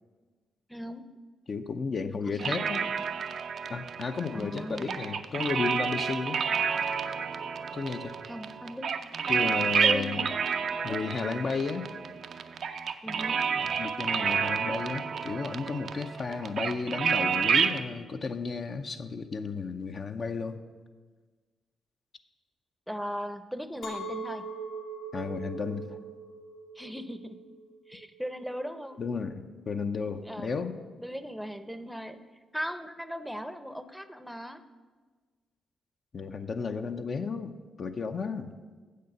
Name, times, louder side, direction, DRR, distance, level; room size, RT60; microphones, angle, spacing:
voice 1, 0.7-1.1 2.3-2.5 4.3-5.0 8.3-9.0 9.2-9.5 9.8-10.3 10.8-11.0 13.0-13.5 22.9-24.5 26.8-27.4 27.9-29.0 30.2-30.6 31.0-32.2 32.5-34.6, equal, ahead, 11 dB, 0.7 m, -38 dB
voice 2, 1.5-2.9 3.7-6.4 7.7-8.2 9.3-10.2 10.8-11.9 13.6-20.6 25.1-26.0 29.0-30.8 36.1-38.5, left 4 dB, 55° left, 7 dB, 0.6 m, -33 dB
sound 1, 2.4-17.8, right 6 dB, 65° right, 0.5 m, -30 dB
Chink clink, 23.8-29.0, right 4 dB, 80° left, 1.9 m, -41 dB
7.7 x 6.7 x 6.7 m, 1.4 s
supercardioid pair, 55°, 0 cm